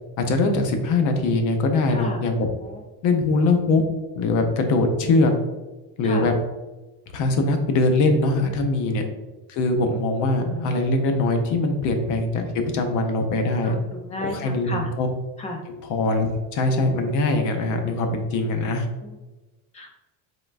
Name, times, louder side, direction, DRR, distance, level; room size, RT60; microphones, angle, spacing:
voice 1, 0.2-2.5 3.0-3.8 4.1-5.3 6.0-6.3 7.1-9.0 9.5-13.7 14.2-15.1 15.9-18.9, left 2 dB, 45° left, 5 dB, 0.7 m, -22 dB
voice 2, 1.9-2.3 2.6-2.8 4.9-5.1 6.0-6.3 9.0-9.1 13.6-14.9 15.4-15.6 19.0-19.1 19.7-19.9, left 2 dB, 20° left, 3 dB, 0.3 m, -33 dB
5.5 x 3.8 x 2.4 m, 1.2 s
cardioid pair, 165°, 41 cm